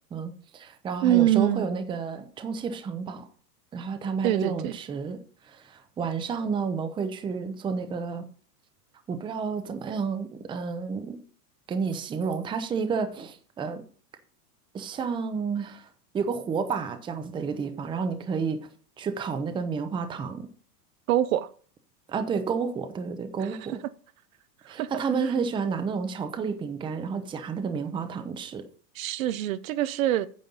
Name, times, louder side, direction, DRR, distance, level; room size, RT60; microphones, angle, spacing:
voice 1, 0.1-3.3 3.7-8.3 9.1-11.2 11.7-13.8 14.7-15.9 16.1-18.6 19.0-20.5 22.1-23.8 24.7-28.6, right 5 dB, 10° right, 0.7 m, -30 dB
voice 2, 1.0-1.7 4.2-4.7 21.1-21.5 23.4-23.5 24.6-24.9 25.2-25.3 28.9-30.3, right 13 dB, 60° right, 0.8 m, -24 dB
9.4 x 6.4 x 5.4 m
supercardioid pair, 145°, 47 cm